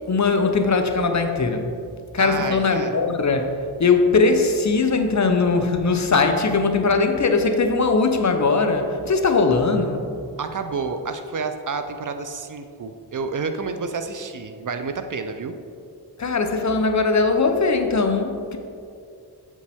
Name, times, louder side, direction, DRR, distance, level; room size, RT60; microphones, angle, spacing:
voice 1, 0.1-1.7 2.1-3.5 3.8-10.1 16.2-18.6, left 4 dB, 40° left, 6 dB, 0.7 m, -20 dB
voice 2, 2.2-3.0 10.4-15.6, right 4 dB, 45° right, 8 dB, 0.5 m, -29 dB
7.7 x 5.3 x 3.5 m, 2.4 s
cardioid pair, 50°, 42 cm